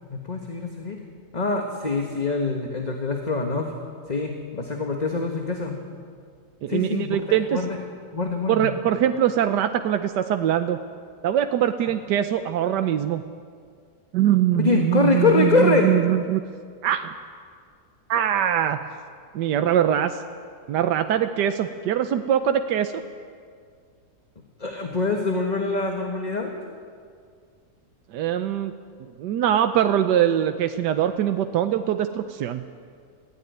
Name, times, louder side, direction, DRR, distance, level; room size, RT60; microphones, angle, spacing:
voice 1, 0.1-1.0 1.3-3.7 4.1-5.8 6.7-7.8 8.1-8.7 14.6-15.9 24.6-26.5, left 3 dB, 25° left, 2 dB, 1.5 m, -24 dB
voice 2, 6.6-7.6 8.5-10.8 11.2-13.2 14.1-16.4 16.8-17.1 18.1-18.8 19.3-20.2 20.7-23.0 28.1-28.7 29.2-32.6, right 10 dB, 85° right, 8 dB, 1.4 m, -22 dB
21.0 x 16.0 x 9.4 m, 2.1 s
omnidirectional pair, 1.8 m